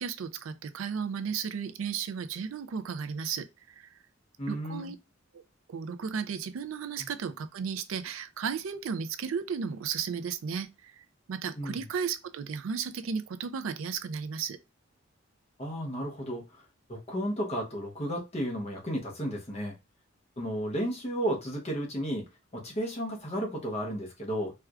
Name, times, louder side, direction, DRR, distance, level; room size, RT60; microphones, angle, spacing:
voice 1, 0.0-3.5 3.8-3.9 4.5-5.0 5.3-5.4 5.7-14.6, right 6 dB, 75° right, 0.4 m, -34 dB
voice 2, 4.4-4.9 7.0-7.1 11.6-11.8 15.6-16.6 16.9-19.7 20.4-22.3 22.5-24.5, equal, 30° left, 0.8 m, -33 dB
4.4 x 2.3 x 2.3 m
head